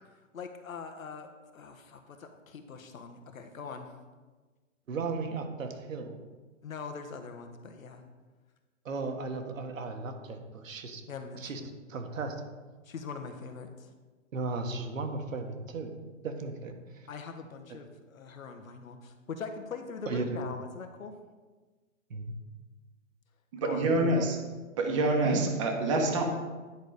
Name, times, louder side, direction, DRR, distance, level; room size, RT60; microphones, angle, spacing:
voice 1, 0.2-3.9 6.6-8.0 11.1-11.7 12.8-13.9 17.1-21.1 23.6-23.9, left 5 dB, 90° left, 6 dB, 1.4 m, -42 dB
voice 2, 4.9-6.2 8.8-11.0 11.3-11.6 11.9-12.4 14.3-16.0 16.2-17.1 17.7-17.8 20.1-20.4 22.1-22.3 23.8-24.2 25.2-25.4 26.1-26.2, right 3 dB, 80° right, 5 dB, 1.5 m, -35 dB
voice 3, 23.5-24.4 24.8-26.2, right 2 dB, 25° right, 3 dB, 1.0 m, -27 dB
10.0 x 4.7 x 4.9 m, 1.3 s
hypercardioid pair, 170°, 39 cm